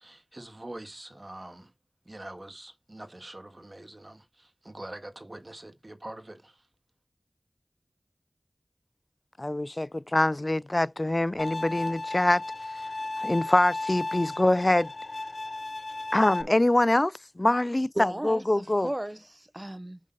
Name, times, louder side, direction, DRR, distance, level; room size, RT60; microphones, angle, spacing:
voice 1, 0.0-1.7 2.0-6.7, right 1 dB, 40° right, 1.6 m, -44 dB
voice 2, 9.4-12.4 13.2-14.9 16.1-18.9, left 1 dB, 35° left, 0.3 m, -24 dB
Bowed string instrument, 11.4-16.4, left 2 dB, 60° left, 0.7 m, -35 dB
voice 3, 18.0-20.0, right 1 dB, 25° right, 0.6 m, -35 dB
6.4 x 5.2 x 4.0 m
wide cardioid pair, 45°, 0 cm